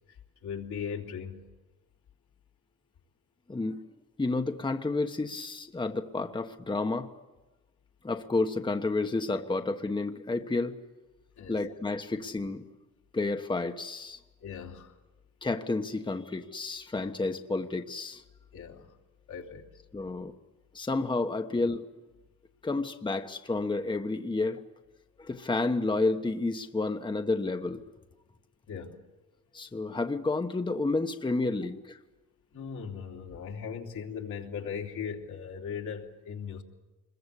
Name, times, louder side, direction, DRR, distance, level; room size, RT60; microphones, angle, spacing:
voice 1, 0.4-1.5 11.4-11.6 14.4-15.0 18.5-19.0 19.3-19.7 28.7-29.0 32.5-36.6, left 7 dB, 80° left, 0 dB, 3.2 m, -38 dB
voice 2, 3.5-3.8 4.2-7.1 8.0-10.8 11.5-12.6 13.1-14.2 15.4-18.2 19.9-20.3 20.7-21.9 22.6-24.6 25.2-27.8 29.5-32.0, left 3 dB, 15° left, 6 dB, 1.2 m, -30 dB
26.0 x 22.0 x 8.3 m, 1.1 s
cardioid pair, 90°, 30 cm